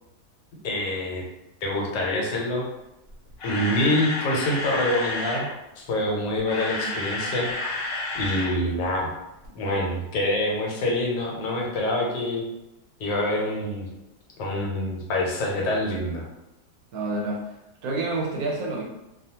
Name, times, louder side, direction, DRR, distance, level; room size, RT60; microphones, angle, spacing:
voice 1, 0.6-1.2 1.6-2.7 3.4-5.5 5.8-7.5 8.1-9.1 9.5-12.4 13.0-13.9 14.4-16.2, left 1 dB, 85° left, -1 dB, 1.3 m, -26 dB
Camera, 3.1-5.5 6.3-8.6 8.8-9.0 9.4-9.5, left 2 dB, 60° left, 0.9 m, -30 dB
voice 2, 16.9-17.6 17.8-18.8, right 2 dB, 70° right, -1 dB, 1.0 m, -28 dB
2.7 x 2.3 x 2.8 m, 0.95 s
omnidirectional pair, 1.8 m